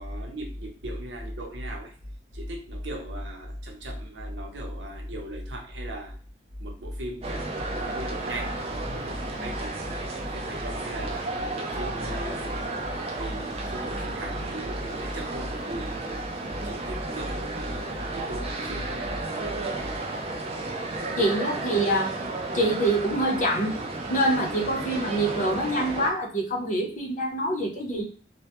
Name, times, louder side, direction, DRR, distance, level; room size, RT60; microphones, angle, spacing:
voice 1, 0.0-1.9 2.3-6.2 6.6-11.3 11.7-12.8 13.1-16.2 16.6-19.2, equal, 80° right, 1 dB, 0.7 m, -36 dB
sound 1, 7.2-26.1, right 2 dB, 35° right, 0.4 m, -33 dB
voice 2, 21.2-22.1 22.5-23.8 24.1-28.0, right 1 dB, 45° left, 0 dB, 0.6 m, -25 dB
2.1 x 2.1 x 2.8 m, 0.43 s
head